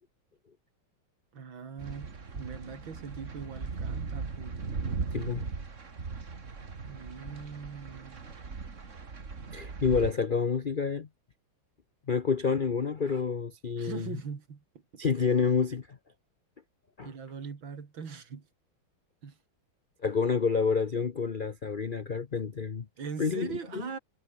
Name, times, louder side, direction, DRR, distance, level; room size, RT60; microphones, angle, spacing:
voice 1, 1.3-4.6 6.9-8.4 13.8-15.0 17.0-18.5 19.2-19.4 23.0-24.0, right 6 dB, 65° right, 3.3 m, -41 dB
sound 1, 1.8-10.1, right 4 dB, 35° right, 2.3 m, -38 dB
voice 2, 5.1-5.4 9.5-11.1 12.1-14.1 15.0-16.0 17.0-17.1 20.0-22.9 23.2-23.5 23.7-23.8, left 5 dB, 60° left, 0.5 m, -28 dB
omnidirectional pair, 2.3 m